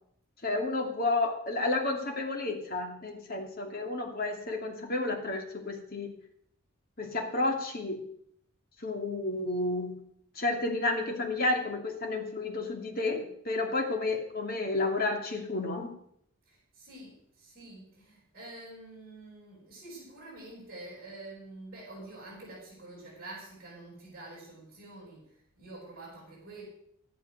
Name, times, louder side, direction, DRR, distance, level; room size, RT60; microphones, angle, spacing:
voice 1, 0.4-6.1 7.0-8.0 8.8-10.0 10.4-15.9, left 2 dB, 45° left, 2 dB, 2.5 m, -31 dB
voice 2, 16.5-26.6, right 2 dB, 40° right, -8 dB, 7.6 m, -47 dB
13.0 x 11.0 x 6.6 m, 0.69 s
head